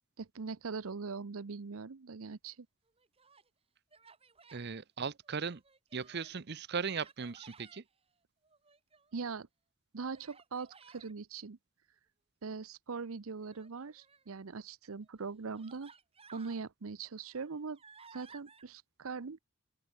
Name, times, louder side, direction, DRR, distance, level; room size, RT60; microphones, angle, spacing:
voice 1, 0.2-2.7 9.1-9.5 9.9-11.6 12.4-15.9 16.3-17.8 18.1-19.4, right 4 dB, 90° right, 0.7 m, -41 dB
Human voice, 2.9-3.5 3.9-4.7 5.2-6.4 6.8-7.8 8.4-9.2 10.1-11.1 13.4-14.3 15.0-15.1 15.5-16.6 17.1-18.6, right 5 dB, 30° right, 3.4 m, -58 dB
voice 2, 4.5-5.6 5.9-7.8, right 5 dB, 55° right, 0.7 m, -38 dB
open air
head